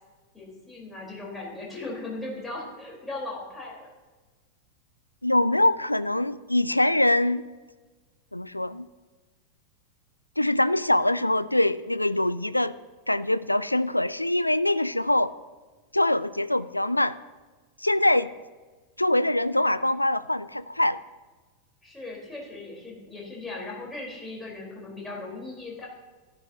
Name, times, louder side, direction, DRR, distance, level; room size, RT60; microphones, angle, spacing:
voice 1, 0.3-3.9 21.8-25.9, left 2 dB, 5° left, -4 dB, 4.2 m, -38 dB
voice 2, 5.2-7.4 8.3-8.9 10.4-12.8 13.1-15.3 15.9-17.2 17.8-18.3 19.0-21.0, left 1 dB, 85° left, 16 dB, 0.3 m, -23 dB
15.0 x 11.5 x 2.9 m, 1.3 s
figure-of-eight pair, 90°, 0 cm